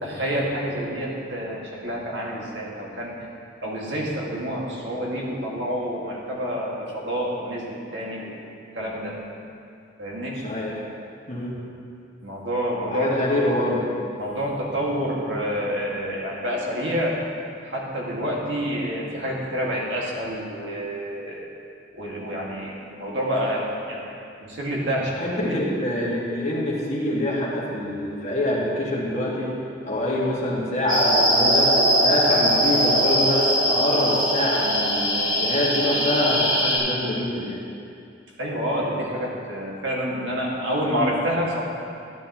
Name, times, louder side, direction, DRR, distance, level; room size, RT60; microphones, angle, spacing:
voice 1, 0.0-3.2 3.6-8.3 8.7-9.2 10.0-10.4 12.2-13.5 14.2-17.2 17.6-21.5 21.9-25.6 38.4-41.6, equal, 75° right, -4 dB, 2.0 m, -28 dB
voice 2, 10.4-10.8 11.3-11.6 12.9-13.8 25.2-29.5 29.8-31.7 32.0-37.6, left 1 dB, 40° left, -5 dB, 1.9 m, -25 dB
sound 1, 30.9-36.8, equal, 45° right, 2.8 m, -21 dB
12.5 x 10.5 x 3.0 m, 2.5 s
head